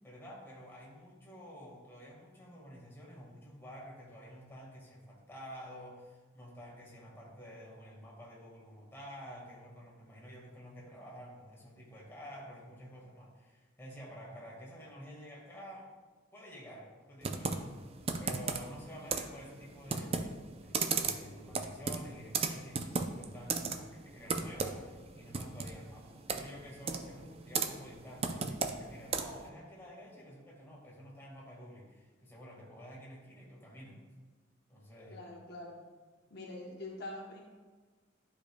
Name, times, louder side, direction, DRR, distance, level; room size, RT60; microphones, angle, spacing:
voice 1, 0.0-15.9 16.3-17.9 18.2-34.0 34.7-35.2, equal, 10° left, -4 dB, 1.6 m, -50 dB
Computer keyboard, 17.2-29.5, right 5 dB, 30° right, 0.4 m, -36 dB
voice 2, 26.9-27.3 35.1-35.8 36.3-37.4, left 2 dB, 55° left, -1 dB, 0.8 m, -45 dB
11.5 x 5.1 x 2.2 m, 1.4 s
head